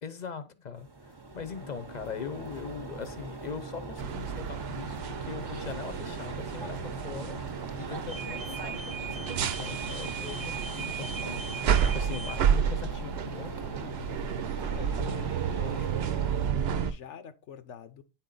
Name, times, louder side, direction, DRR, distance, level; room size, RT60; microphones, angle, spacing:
voice 1, 0.0-11.5 11.9-13.6, left 6 dB, 45° left, 0.8 m, -41 dB
sound 1, 0.8-16.5, right 3 dB, 25° right, 0.7 m, -41 dB
sound 2, 4.0-16.9, right 8 dB, 65° right, 0.8 m, -31 dB
voice 2, 13.8-14.2 14.6-16.2 16.5-18.0, left 8 dB, 85° left, 1.1 m, -46 dB
9.3 x 4.3 x 3.9 m
omnidirectional pair, 1.2 m